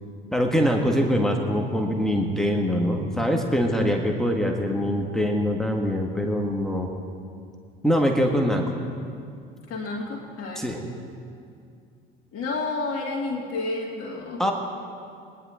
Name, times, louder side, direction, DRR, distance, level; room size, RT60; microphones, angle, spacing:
voice 1, 0.3-6.9 7.8-8.7 10.6-10.8 14.4-14.5, equal, ahead, 1 dB, 1.6 m, -23 dB
voice 2, 0.8-2.5 9.7-10.6 12.3-14.4, left 3 dB, 50° left, -4 dB, 2.1 m, -32 dB
22.0 x 10.5 x 3.9 m, 2.4 s
hypercardioid pair, 60°, 29 cm